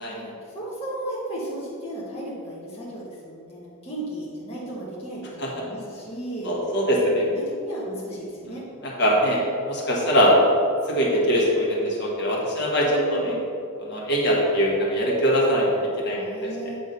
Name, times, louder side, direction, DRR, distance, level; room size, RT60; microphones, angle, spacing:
voice 1, 0.0-6.5 7.0-8.6 12.8-13.4 16.1-16.8, right 1 dB, 25° left, -7 dB, 1.1 m, -35 dB
voice 2, 6.4-7.2 8.4-8.5 8.8-10.4 10.8-13.3 13.8-16.5, equal, 50° left, -4 dB, 1.4 m, -22 dB
7.9 x 3.7 x 5.3 m, 2.6 s
head